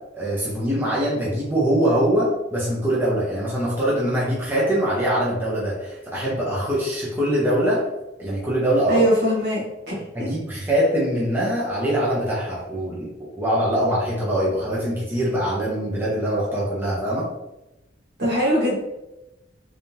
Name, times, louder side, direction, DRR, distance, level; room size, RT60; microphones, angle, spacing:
voice 1, 0.1-7.8 8.2-9.0 10.1-17.3, right 1 dB, 10° right, -7 dB, 0.8 m, -23 dB
voice 2, 8.9-10.3 18.2-18.7, equal, 55° right, -5 dB, 1.5 m, -22 dB
3.6 x 3.4 x 2.8 m, 0.96 s
head